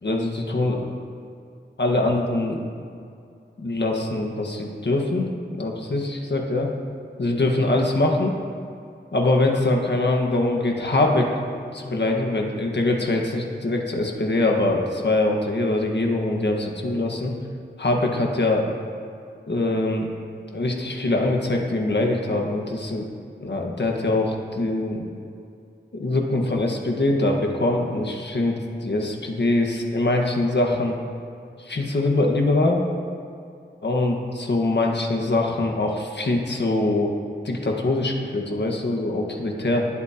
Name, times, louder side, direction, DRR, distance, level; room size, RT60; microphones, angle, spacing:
voice 1, 0.0-0.9 1.8-2.6 3.6-5.3 5.6-6.7 7.2-8.4 9.1-11.3 11.7-17.3 17.8-18.6 19.5-20.1 20.5-23.0 23.4-25.0 25.9-31.0 31.6-32.8 33.8-37.2 37.4-39.9, left 2 dB, 70° left, 0 dB, 1.6 m, -23 dB
20.0 x 8.7 x 2.9 m, 2.5 s
wide cardioid pair, 85°, 19 cm